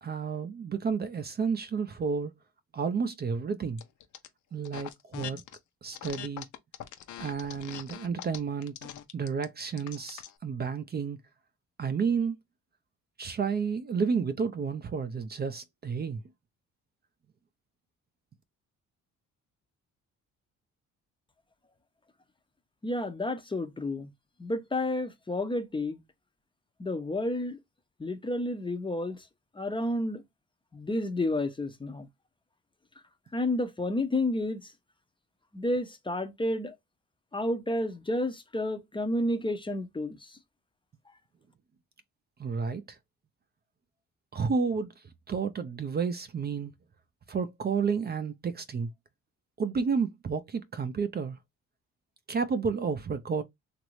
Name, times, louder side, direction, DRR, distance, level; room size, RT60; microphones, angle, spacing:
voice 1, 0.0-2.3 2.7-3.8 4.5-5.4 5.8-6.5 7.2-8.7 9.1-11.2 11.8-12.4 13.2-16.2 42.4-42.8 44.3-44.9 45.3-46.7 47.3-48.9 49.6-51.4 52.3-53.4, right 5 dB, 35° right, 0.5 m, -31 dB
sound 1, 3.8-4.3 4.6-5.6 5.9-10.3, left 11 dB, 75° left, 0.6 m, -42 dB
voice 2, 22.8-24.1 24.4-26.0 26.8-27.6 28.0-29.2 29.6-30.2 30.7-32.1 33.3-34.6 35.5-36.7 37.3-40.2, left 1 dB, 15° left, 0.6 m, -30 dB
3.0 x 2.5 x 3.1 m
cardioid pair, 90°, 30 cm